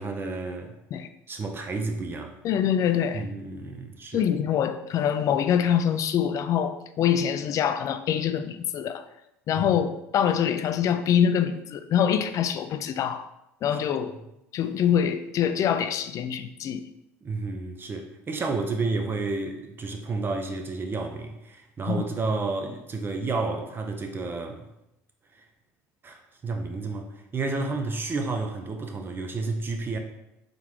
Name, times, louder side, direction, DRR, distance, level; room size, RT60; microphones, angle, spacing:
voice 1, 0.0-0.7 1.3-2.4 3.1-4.3 9.6-9.7 17.2-24.7 26.0-30.0, right 3 dB, 30° right, 3 dB, 0.5 m, -31 dB
voice 2, 2.4-3.3 4.1-9.0 9.5-13.3 13.6-14.1 14.5-16.8 21.9-22.0, left 8 dB, 50° left, 10 dB, 0.3 m, -25 dB
3.8 x 3.4 x 3.0 m, 0.87 s
hypercardioid pair, 80°, 7 cm